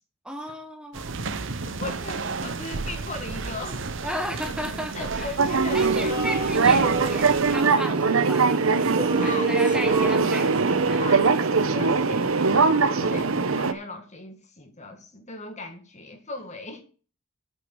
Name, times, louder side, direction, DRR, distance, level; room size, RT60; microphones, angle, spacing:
voice 1, 0.2-1.3 4.0-5.3 5.7-11.4, equal, 5° right, 1.3 m, -35 dB
sound 1, 0.9-7.6, right 4 dB, 65° right, 0.9 m, -32 dB
voice 2, 1.6-3.8 4.9-6.3 9.2-10.2 11.0-16.8, left 2 dB, 35° left, 1.8 m, -38 dB
sound 2, 5.4-13.7, right 4 dB, 90° right, 0.9 m, -21 dB
Male singing, 6.1-8.5 8.8-11.0, right 2 dB, 20° right, 1.5 m, -33 dB
8.6 x 6.4 x 7.8 m
head